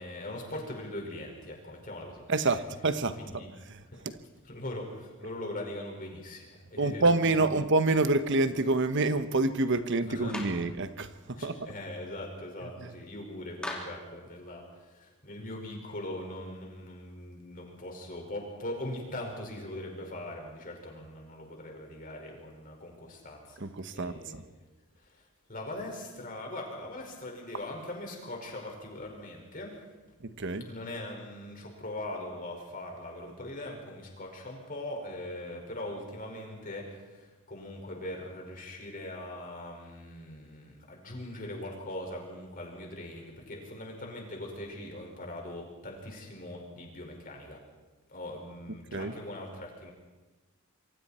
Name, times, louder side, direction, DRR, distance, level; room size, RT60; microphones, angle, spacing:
voice 1, 0.0-2.2 3.2-3.5 3.9-4.0 4.4-7.3 10.1-10.4 11.3-24.4 25.0-29.8 30.6-47.6 48.1-49.9, left 1 dB, 40° left, 5.4 m, -41 dB
voice 2, 2.3-3.2 3.7-4.2 6.8-11.7 23.6-24.4 30.2-30.7 48.9-49.1, right 2 dB, 60° right, 1.1 m, -27 dB
Clapping, 10.3-10.7 13.6-14.0, left 1 dB, 5° left, 3.2 m, -38 dB
27.0 x 24.0 x 4.4 m
head